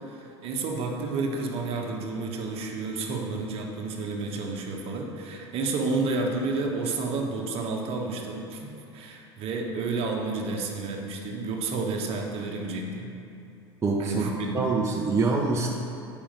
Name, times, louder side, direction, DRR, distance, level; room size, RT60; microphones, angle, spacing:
voice 1, 0.0-13.1 14.0-14.6, right 3 dB, 45° right, 1 dB, 1.2 m, -30 dB
voice 2, 13.8-15.7, right 3 dB, 20° right, -1 dB, 0.8 m, -25 dB
8.8 x 5.4 x 5.2 m, 2.8 s
hypercardioid pair, 80°, 14 cm